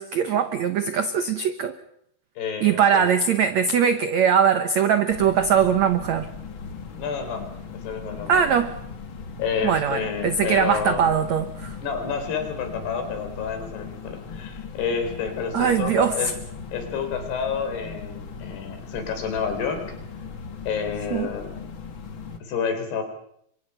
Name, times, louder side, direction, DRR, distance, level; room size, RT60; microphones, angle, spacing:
voice 1, 0.0-1.8 2.6-6.3 8.3-8.8 9.6-11.8 15.5-16.3 21.1-21.3, right 7 dB, 85° right, 9 dB, 1.5 m, -21 dB
voice 2, 2.4-3.1 7.0-7.5 7.8-8.5 9.4-11.1 11.8-16.3 16.7-19.8 20.7-21.6 22.4-23.0, left 6 dB, 70° left, 6 dB, 5.8 m, -29 dB
sound 1, 5.1-22.4, left 5 dB, 45° left, 1.7 m, -38 dB
30.0 x 25.0 x 5.7 m, 0.70 s
omnidirectional pair, 4.9 m